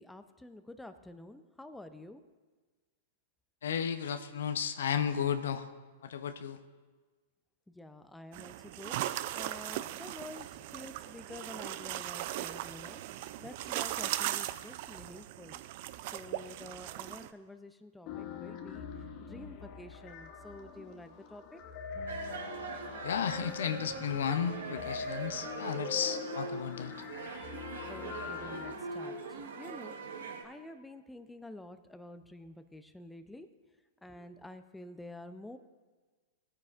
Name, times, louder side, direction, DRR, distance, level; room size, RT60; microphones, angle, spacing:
voice 1, 0.0-2.2 7.7-15.6 16.1-18.9 19.2-21.6 27.9-30.0 30.4-33.5 34.0-35.6, left 1 dB, 5° left, 9 dB, 0.5 m, -49 dB
voice 2, 3.6-5.7 6.0-6.6 23.0-26.9, left 8 dB, 80° left, 10 dB, 0.6 m, -33 dB
sound 1, 8.3-17.3, right 14 dB, 55° right, 0.4 m, -38 dB
sound 2, 18.1-28.7, left 6 dB, 45° left, 1.0 m, -43 dB
sound 3, 22.1-30.4, right 4 dB, 80° right, 1.2 m, -42 dB
16.0 x 9.5 x 2.5 m, 1.4 s
hypercardioid pair, 115°, 0 cm